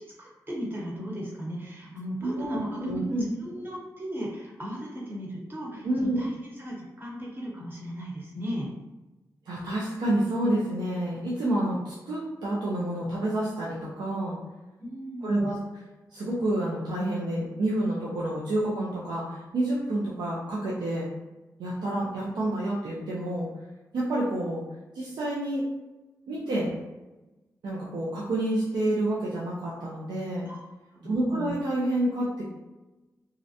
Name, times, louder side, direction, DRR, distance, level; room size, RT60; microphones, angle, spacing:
voice 1, 0.0-3.0 3.4-8.7 14.8-15.5 26.4-26.7 30.4-30.6 30.9-31.5, equal, 30° right, -3 dB, 0.9 m, -36 dB
voice 2, 2.2-3.3 5.8-6.2 9.5-14.4 15.2-15.6 16.1-21.1 21.6-23.5 23.9-24.6 24.9-25.6 26.3-26.7 27.6-30.5 31.0-32.4, right 1 dB, 85° right, -7 dB, 0.5 m, -28 dB
2.5 x 2.0 x 2.7 m, 1.1 s
cardioid pair, 55°, 7 cm